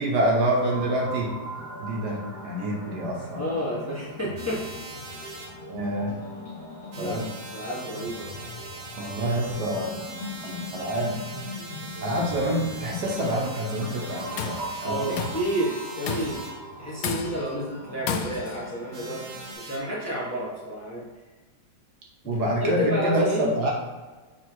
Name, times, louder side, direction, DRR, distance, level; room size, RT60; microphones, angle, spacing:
voice 1, 0.0-1.3 1.8-3.4 5.7-6.1 7.0-7.3 9.0-10.0 10.4-11.2 12.0-15.2 22.3-23.7, right 1 dB, 65° right, -1 dB, 1.4 m, -27 dB
sound 1, 0.7-19.5, left 1 dB, 30° left, 1.8 m, -40 dB
voice 2, 3.4-4.6 4.9-5.4 7.0-7.2 7.5-8.4 14.8-16.4 16.8-21.0 22.2-23.5, equal, 10° left, -6 dB, 0.9 m, -30 dB
sound 2, 4.4-5.5 6.9-16.5 18.9-19.8, right 2 dB, 80° right, 1.8 m, -42 dB
Tools, 14.1-14.7 15.2-15.5 16.1-16.5 17.0-17.5 18.1-18.6, left 6 dB, 75° left, 0.8 m, -32 dB
6.2 x 3.5 x 4.5 m, 1.3 s
omnidirectional pair, 2.1 m